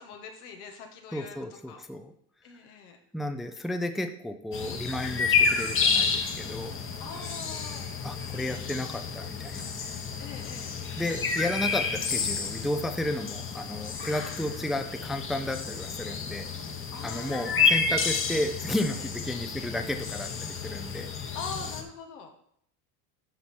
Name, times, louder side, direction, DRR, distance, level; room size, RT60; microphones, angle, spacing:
voice 1, 0.0-1.4 1.7-1.8 2.4-3.0 7.0-7.9 10.2-10.8 16.9-17.8 19.0-19.1 21.3-22.3, left 5 dB, 90° left, 4 dB, 1.8 m, -42 dB
voice 2, 1.1-2.1 3.1-6.7 8.0-9.7 11.0-16.5 17.0-21.1, left 1 dB, ahead, 6 dB, 0.5 m, -33 dB
sound 1, 4.5-21.8, left 5 dB, 30° left, 1.1 m, -30 dB
9.7 x 5.7 x 4.5 m, 0.67 s
supercardioid pair, 120°, 44 cm